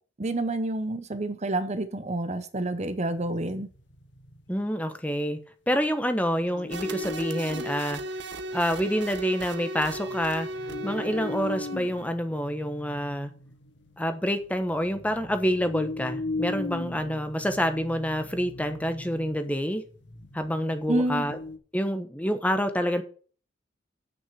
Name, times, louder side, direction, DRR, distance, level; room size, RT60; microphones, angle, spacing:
voice 1, 0.2-3.7 20.9-21.2, right 2 dB, 40° right, 12 dB, 0.8 m, -28 dB
sound 1, 2.8-4.6 6.4-7.8 8.1-8.2 8.8-9.2 9.8-21.6, left 2 dB, 75° left, 1.6 m, -39 dB
voice 2, 4.5-5.4 5.7-8.0 8.5-10.5 10.8-13.3 14.0-19.8 20.3-21.4 21.7-23.0, equal, 10° left, 9 dB, 1.1 m, -27 dB
sound 2, 6.7-12.1, right 1 dB, 70° right, 1.1 m, -36 dB
8.7 x 6.4 x 6.7 m, 0.40 s
head